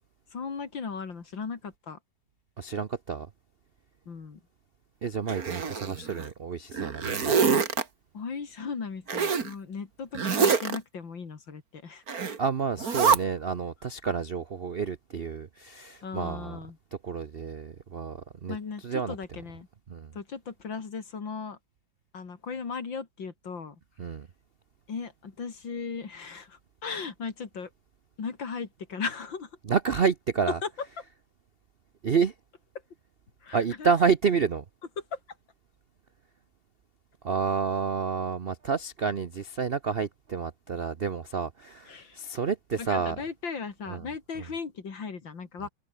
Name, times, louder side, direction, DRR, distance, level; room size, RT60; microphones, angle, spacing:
voice 1, 0.3-2.0 4.1-4.4 8.1-12.0 16.0-16.8 18.5-19.7 20.1-21.6 22.1-23.8 24.9-27.7 28.2-29.5 30.6-30.7 33.4-33.9 35.1-35.2 41.9-42.2 42.8-45.7, left 5 dB, 65° left, 3.4 m, -37 dB
voice 2, 2.6-3.3 5.0-7.4 12.4-16.6 16.9-18.6 18.8-19.2 19.9-20.1 24.0-24.3 29.6-30.6 32.0-32.3 33.5-34.6 37.2-43.2 43.9-44.1 45.6-45.7, right 6 dB, 65° right, 0.5 m, -29 dB
Zipper (clothing), 5.3-6.3 6.7-7.8 9.1-9.5 10.1-10.8 12.1-12.4 12.8-13.2, right 6 dB, 45° right, 2.3 m, -25 dB
omnidirectional pair, 2.3 m